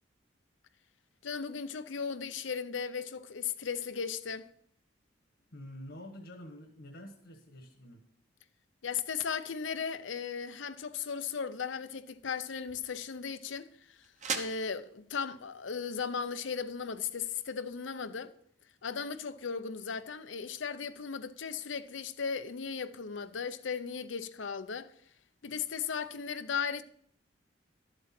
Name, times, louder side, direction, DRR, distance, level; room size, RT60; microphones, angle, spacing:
voice 1, 1.2-4.5 8.8-13.7 14.3-18.3 18.8-24.9 25.4-26.8, left 6 dB, 85° left, 0.7 m, -36 dB
voice 2, 5.5-8.0, left 1 dB, 65° left, 1.4 m, -47 dB
sound 1, 11.5-17.5, right 5 dB, 40° right, 1.0 m, -44 dB
12.5 x 7.9 x 4.4 m
head